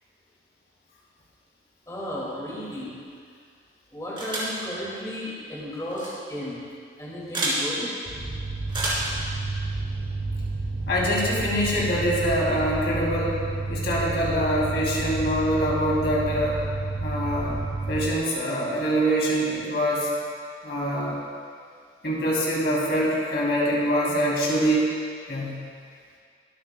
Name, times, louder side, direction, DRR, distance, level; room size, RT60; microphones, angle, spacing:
voice 1, 1.9-3.0 3.9-6.6 7.0-7.9, left 1 dB, 20° left, -7 dB, 2.1 m, -34 dB
sound 1, 4.2-4.6 5.9-6.1 7.3-7.6 8.7-9.1, right 1 dB, 25° right, 3.2 m, -28 dB
sound 2, 8.1-18.0, right 3 dB, 80° right, 2.7 m, -30 dB
voice 2, 10.9-13.4 13.7-16.6 17.0-17.6 17.9-20.1 20.6-21.1 22.0-24.9 25.3-25.6, equal, 60° left, -5 dB, 2.8 m, -24 dB
22.5 x 9.2 x 2.2 m, 2.2 s
head